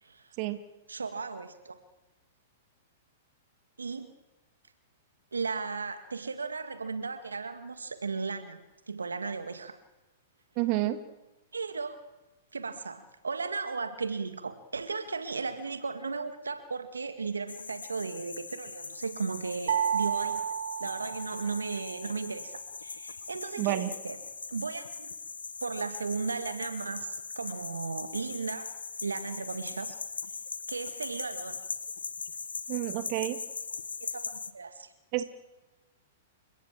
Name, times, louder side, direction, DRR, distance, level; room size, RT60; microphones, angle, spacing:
voice 1, 0.0-0.3 0.9-1.8 3.8-4.1 5.3-8.6 8.9-9.8 11.5-12.0 12.5-20.4 20.8-24.2 24.5-25.1 25.6-28.7 29.0-30.0 30.7-31.6 34.0-34.9, right 4 dB, 85° right, 10 dB, 2.1 m, -36 dB
voice 2, 10.6-11.0 23.6-23.9 32.7-33.4 35.1-35.2, right 16 dB, 45° right, 10 dB, 2.2 m, -29 dB
sound 1, 17.5-34.5, left 5 dB, 80° left, 1.3 m, -40 dB
sound 2, 19.7-21.8, right 8 dB, 65° right, 2.8 m, -31 dB
29.5 x 17.5 x 7.6 m, 1.1 s
figure-of-eight pair, 110°, 0 cm